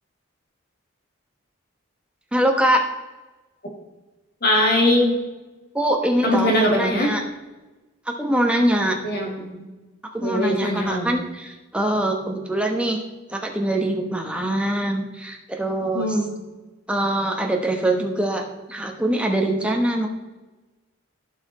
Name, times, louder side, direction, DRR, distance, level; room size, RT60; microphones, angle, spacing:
voice 1, 2.3-2.8 5.7-7.2 8.1-9.0 10.0-13.0 13.3-16.1 16.9-20.1, right 1 dB, 5° right, 3 dB, 1.1 m, -23 dB
voice 2, 4.4-5.1 6.2-7.1 9.0-9.6 10.2-11.1 15.9-16.4, left 1 dB, 50° left, 0 dB, 2.4 m, -21 dB
15.5 x 5.8 x 4.2 m, 1.1 s
head